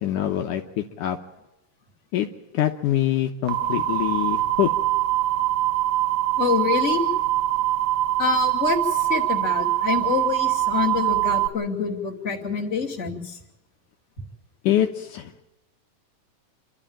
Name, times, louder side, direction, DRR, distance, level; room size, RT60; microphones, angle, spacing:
voice 1, 0.0-1.2 2.1-2.3 2.5-4.7 14.6-15.4, left 12 dB, 70° left, 4 dB, 2.5 m, -24 dB
sound 1, 3.5-11.5, right 14 dB, 65° right, 2.1 m, -23 dB
voice 2, 6.4-7.0 8.2-13.4, left 6 dB, 20° left, -1 dB, 2.7 m, -26 dB
28.0 x 12.5 x 8.9 m, 0.96 s
omnidirectional pair, 3.9 m